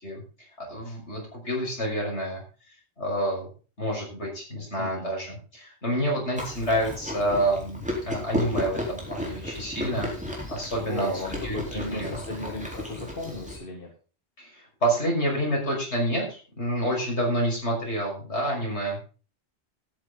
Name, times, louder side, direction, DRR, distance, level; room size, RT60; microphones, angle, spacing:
voice 1, 0.0-2.4 3.0-3.5 3.8-10.1 10.5-11.1 11.4-12.1 14.4-19.0, right 1 dB, 80° left, -2 dB, 6.4 m, -28 dB
voice 2, 4.8-5.1 10.9-13.9, left 2 dB, 50° left, 0 dB, 2.4 m, -35 dB
Chewing mastication, 6.4-13.6, left 1 dB, 5° right, 4.1 m, -34 dB
13.0 x 10.5 x 4.0 m, 0.36 s
omnidirectional pair, 1.1 m